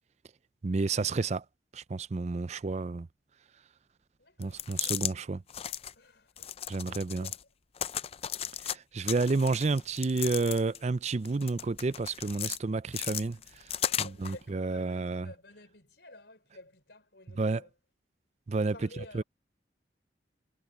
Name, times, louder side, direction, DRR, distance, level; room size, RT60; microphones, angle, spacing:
voice 1, 0.6-1.4 1.7-3.1 4.4-5.4 6.7-7.3 8.6-15.3 17.4-17.6 18.5-18.7 19.1-19.2, right 3 dB, 40° right, 0.4 m, -30 dB
voice 2, 4.2-5.2 5.9-6.6 6.9-7.4 13.8-17.7 18.7-19.2, left 2 dB, 70° left, 4.7 m, -52 dB
sound 1, 4.4-5.1 5.5-5.9 6.4-7.4 7.8-8.8 9.1-10.8 11.3-12.6 12.9-14.4, left 10 dB, 35° left, 0.5 m, -35 dB
head